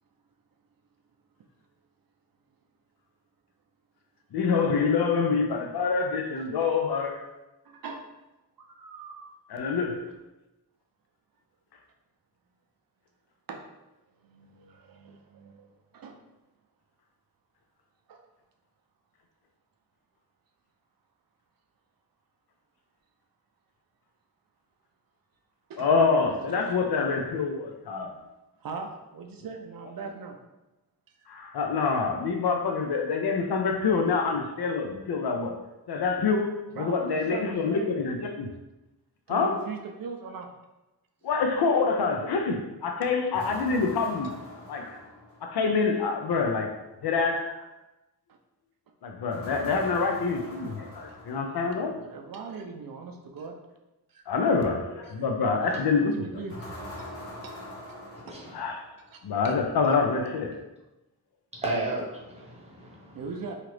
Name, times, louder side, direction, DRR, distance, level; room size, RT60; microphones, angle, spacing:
voice 1, 4.3-7.2 9.5-10.1 25.8-28.1 31.3-35.5 35.9-38.5 39.3-39.6 41.2-44.3 44.7-45.0 45.4-46.7 47.0-47.6 49.0-51.9 54.3-56.2 58.5-58.7 59.2-60.6, left 4 dB, 70° left, 3 dB, 0.5 m, -26 dB
voice 2, 7.6-8.0 8.6-9.3 13.5-13.6 14.2-15.7 15.9-16.2 18.1-18.2 25.7-25.9 26.5-26.8 28.6-30.4 36.7-38.0 39.3-40.5 44.6-44.9 48.3-48.4 51.9-53.5 54.1-54.2 55.0-55.2 55.5-56.6 57.0-57.1 57.4-57.5 58.3-58.4 59.1-59.5 59.8-59.9 63.1-63.5, right 4 dB, 60° right, 3 dB, 0.5 m, -40 dB
sound 1, 43.3-45.7 49.3-51.8 56.5-59.1, left 1 dB, 35° left, 0.8 m, -43 dB
voice 3, 58.2-58.6 61.5-63.2, right 2 dB, 15° right, -4 dB, 0.9 m, -33 dB
2.9 x 2.4 x 3.1 m, 1.0 s
wide cardioid pair, 80°, 39 cm